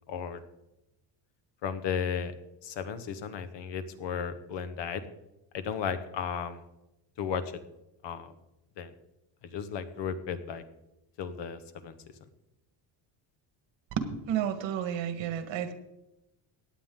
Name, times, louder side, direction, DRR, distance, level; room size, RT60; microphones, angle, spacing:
voice 1, 0.1-0.4 1.6-2.3 2.6-5.0 5.5-6.6 7.2-7.6 8.0-8.3 8.8-8.9 9.4-10.6 11.2-12.0, left 7 dB, 70° left, 11 dB, 1.3 m, -34 dB
voice 2, 14.0-15.7, right 9 dB, 85° right, 9 dB, 1.6 m, -31 dB
16.5 x 9.6 x 3.8 m, 0.91 s
cardioid pair, 150°, 44 cm